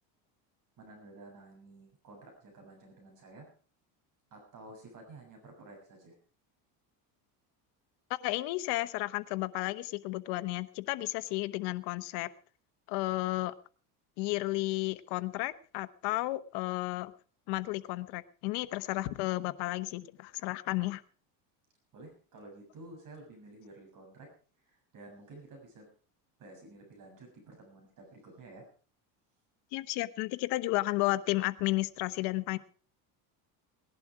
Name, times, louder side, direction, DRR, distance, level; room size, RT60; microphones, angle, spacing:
voice 1, 0.8-3.5 4.3-6.2 21.9-24.3 24.6-25.9 26.4-28.7, right 2 dB, 45° right, 2 dB, 7.3 m, -52 dB
voice 2, 8.2-12.3 12.9-13.5 14.2-17.1 17.5-21.0 29.7-32.6, left 19 dB, 70° left, 14 dB, 1.1 m, -33 dB
18.5 x 11.5 x 4.7 m, 0.39 s
cardioid pair, 130°, 42 cm